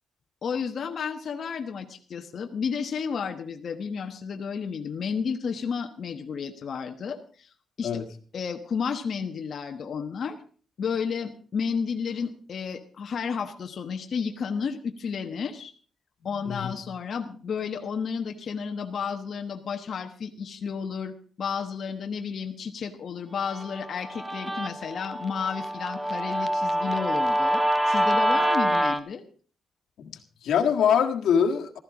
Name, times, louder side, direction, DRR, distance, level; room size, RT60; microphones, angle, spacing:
voice 1, 0.4-7.5 7.8-7.9 8.3-10.4 10.8-15.7 16.2-29.3, left 6 dB, 45° left, 4 dB, 1.2 m, -32 dB
Guitar, 23.5-29.0, right 1 dB, 5° right, 0.8 m, -26 dB
voice 2, 30.0-31.8, left 7 dB, 85° left, 4 dB, 1.7 m, -24 dB
15.5 x 13.5 x 4.8 m, 0.42 s
wide cardioid pair, 175°, 0 cm